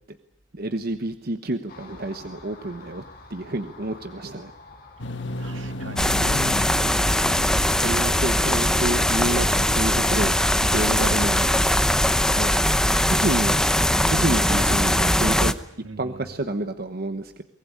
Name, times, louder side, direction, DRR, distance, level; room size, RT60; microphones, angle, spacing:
voice 1, 0.5-3.0 3.3-4.5 7.7-10.4 10.7-11.6 12.4-12.5 13.1-13.6 14.0-15.5 16.0-17.4, right 2 dB, 50° right, 1.1 m, -29 dB
Car passing by, 1.7-11.1, left 3 dB, 50° left, 7.5 m, -49 dB
sound 1, 5.0-11.9, left 1 dB, 65° left, 1.6 m, -36 dB
voice 2, 5.4-6.9 15.8-16.3, right 2 dB, 75° right, 1.9 m, -42 dB
sound 2, 6.0-15.5, left 1 dB, 5° left, 0.8 m, -21 dB
23.5 x 19.0 x 10.0 m
head